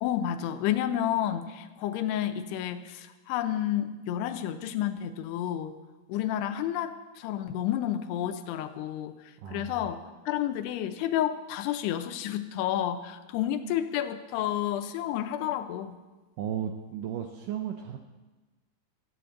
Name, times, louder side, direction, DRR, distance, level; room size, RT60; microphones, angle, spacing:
voice 1, 0.0-5.8 6.1-9.1 9.5-16.0, left 11 dB, 85° left, 8 dB, 2.8 m, -30 dB
voice 2, 9.4-9.8 16.4-18.0, right 9 dB, 85° right, 4 dB, 1.9 m, -34 dB
14.0 x 7.8 x 8.2 m, 1.2 s
omnidirectional pair, 4.7 m